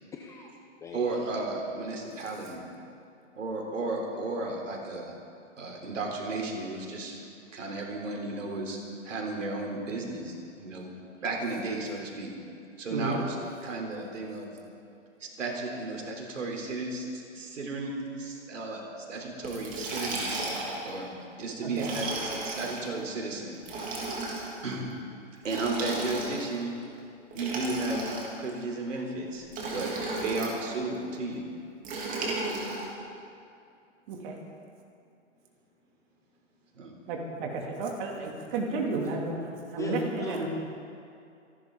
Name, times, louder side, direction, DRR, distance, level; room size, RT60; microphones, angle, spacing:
voice 1, 0.1-0.5 0.8-1.0 39.7-40.5, left 4 dB, 10° left, 0 dB, 0.5 m, -39 dB
voice 2, 0.9-2.7 3.3-5.1 5.6-7.2 7.5-8.8 9.0-10.9 11.2-12.3 12.8-13.4 13.6-14.5 15.2-21.1 21.4-23.6 24.6-24.9 25.4-26.7 27.3-31.5 36.7-36.9, right 2 dB, 80° right, 0 dB, 3.7 m, -34 dB
Liquid, 19.4-20.9 21.7-22.8 23.6-24.5 25.4-26.6 27.3-28.5 29.5-30.6 31.8-32.9, right 2 dB, 20° right, 2.9 m, -34 dB
voice 3, 37.1-40.5, right 3 dB, 40° right, 0 dB, 2.7 m, -32 dB
26.5 x 11.5 x 3.9 m, 2.5 s
hypercardioid pair, 135°, 37 cm